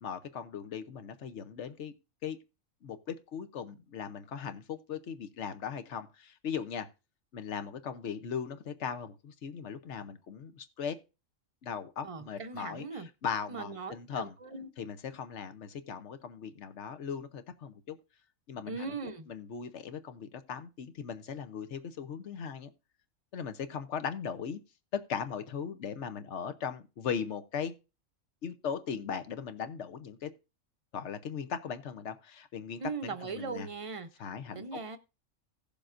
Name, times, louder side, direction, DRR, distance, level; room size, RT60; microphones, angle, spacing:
voice 1, 0.0-1.9 2.2-2.4 2.8-6.9 7.3-11.0 11.6-14.4 14.8-18.0 18.5-22.7 23.3-24.6 25.1-27.7 28.4-30.3 30.9-33.7 34.2-34.8, left 7 dB, 65° left, 1.1 m, -38 dB
voice 2, 12.0-13.1 13.5-14.7 18.7-19.3 32.8-34.1 34.5-35.0, right 4 dB, 30° right, 0.7 m, -39 dB
17.0 x 6.9 x 2.5 m
omnidirectional pair, 1.4 m